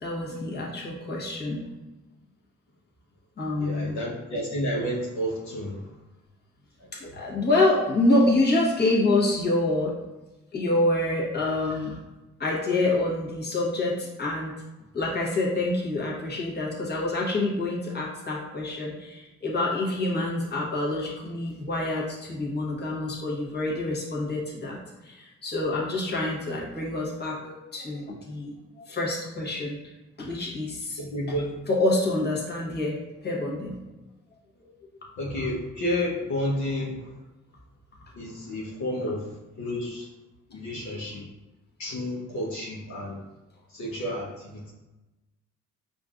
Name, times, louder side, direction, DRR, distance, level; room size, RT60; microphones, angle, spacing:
voice 1, 0.0-1.7 3.4-4.0 6.9-9.9 10.5-12.0 12.4-14.6 14.9-24.8 25.0-29.8 30.2-31.0 31.7-33.7, left 2 dB, 35° left, -4 dB, 1.1 m, -27 dB
voice 2, 3.6-6.0 6.8-7.2 31.0-31.6 35.2-37.2 38.1-40.1 40.5-41.3 41.8-43.2 43.7-44.7, equal, 70° left, -4 dB, 0.9 m, -31 dB
5.2 x 2.5 x 2.4 m, 1.1 s
cardioid pair, 90°, 30 cm